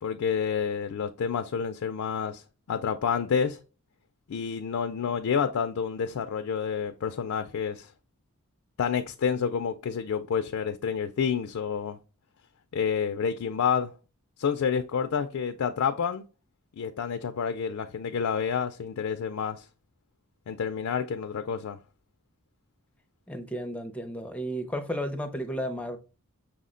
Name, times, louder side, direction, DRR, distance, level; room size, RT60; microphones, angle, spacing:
voice 1, 0.0-3.6 4.3-7.9 8.8-12.0 12.7-13.9 14.4-16.2 16.8-19.7 20.5-21.8, left 6 dB, 65° left, 0.3 m, -29 dB
voice 2, 23.3-26.0, equal, 5° left, 0.4 m, -33 dB
6.0 x 2.1 x 3.7 m
head